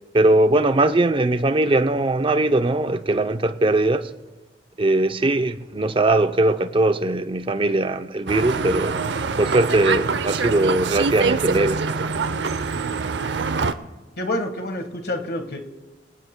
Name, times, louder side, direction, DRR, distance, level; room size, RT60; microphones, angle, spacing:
voice 1, 0.1-4.1 4.8-9.0 9.4-11.8, right 2 dB, 30° right, 0.6 m, -20 dB
sound 1, 8.3-13.7, right 4 dB, 85° right, 0.6 m, -24 dB
voice 2, 14.2-15.6, left 1 dB, 60° left, 1.5 m, -27 dB
25.5 x 18.0 x 2.2 m
head